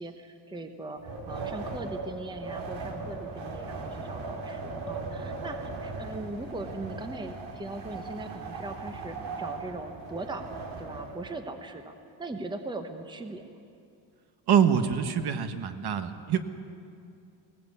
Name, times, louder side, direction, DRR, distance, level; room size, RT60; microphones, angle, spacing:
voice 1, 0.0-13.6, right 2 dB, 10° right, 6 dB, 1.0 m, -40 dB
Wind, 1.0-11.3, right 3 dB, 80° right, 3.1 m, -38 dB
voice 2, 14.5-16.4, right 8 dB, 55° right, 9 dB, 1.3 m, -25 dB
20.0 x 18.0 x 8.4 m, 2.5 s
cardioid pair, 155°, 46 cm